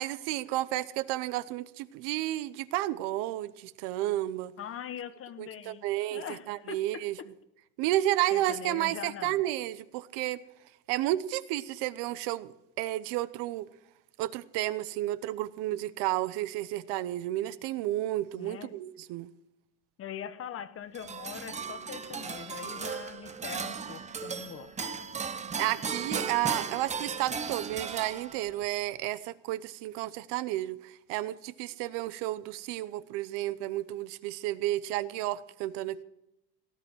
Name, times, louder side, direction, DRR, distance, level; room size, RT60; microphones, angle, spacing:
voice 1, 0.0-4.5 5.4-7.2 7.8-10.4 10.9-12.5 12.8-13.7 14.2-19.3 25.6-36.0, right 15 dB, 60° right, 14 dB, 0.9 m, -32 dB
voice 2, 4.6-7.3 8.3-9.4 18.4-18.7 20.0-25.0, left 9 dB, 30° left, 13 dB, 1.1 m, -42 dB
sound 1, 20.9-28.6, right 5 dB, 15° right, 0.9 m, -36 dB
18.0 x 9.8 x 6.3 m, 0.87 s
cardioid pair, 140°, 47 cm